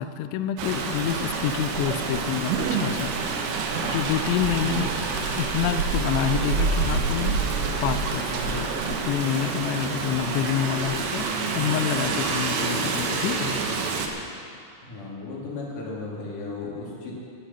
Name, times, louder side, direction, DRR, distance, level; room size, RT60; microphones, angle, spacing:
voice 1, 0.0-3.6 3.8-4.9 5.4-7.5 7.8-13.6, left 10 dB, 85° left, 10 dB, 2.7 m, -28 dB
Rain, 0.6-14.1, right 4 dB, 70° right, 2.4 m, -27 dB
sound 1, 2.0-11.6, right 2 dB, 50° right, 4.0 m, -47 dB
sound 2, 2.2-9.1 9.4-10.4, right 6 dB, 85° right, 3.4 m, -35 dB
voice 2, 14.8-17.1, left 3 dB, 50° left, -5 dB, 3.5 m, -35 dB
18.0 x 9.0 x 5.6 m, 2.4 s
omnidirectional pair, 5.6 m